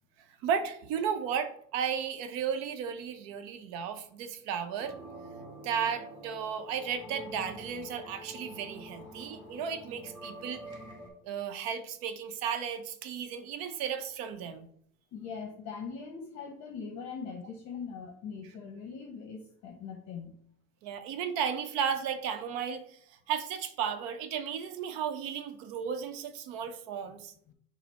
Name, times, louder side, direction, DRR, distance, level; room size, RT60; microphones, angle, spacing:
voice 1, 0.4-4.9 5.6-10.6 11.2-14.7 20.8-27.3, right 7 dB, 55° right, 9 dB, 0.7 m, -34 dB
sound 1, 4.8-11.1, equal, 10° right, 1.5 m, -46 dB
voice 2, 15.1-20.4 27.5-27.6, left 5 dB, 40° left, 2 dB, 0.8 m, -41 dB
5.8 x 2.0 x 4.3 m, 0.64 s
supercardioid pair, 110°, 42 cm